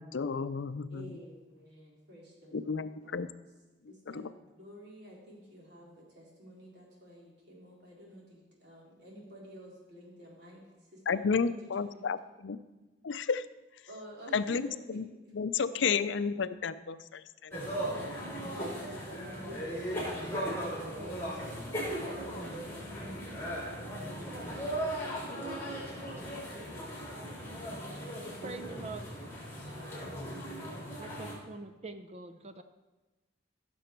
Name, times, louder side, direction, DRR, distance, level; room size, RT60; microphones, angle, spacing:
voice 1, 0.1-1.0 2.5-3.3 4.1-4.3 11.1-12.6 13.0-13.5 14.3-14.6 14.9-15.1 15.3-17.7, left 5 dB, 75° left, 14 dB, 0.5 m, -32 dB
voice 2, 0.9-3.4 3.9-12.1 13.9-15.0 15.6-16.1 17.9-21.6 22.0-23.4 25.4-27.6 29.7-30.9, equal, 60° right, -4 dB, 3.7 m, -51 dB
sound 1, 17.5-31.3, equal, 10° left, 3.8 m, -38 dB
voice 3, 28.4-29.0 31.0-32.6, right 3 dB, 35° right, 9 dB, 0.6 m, -44 dB
15.5 x 6.9 x 4.5 m, 1.1 s
head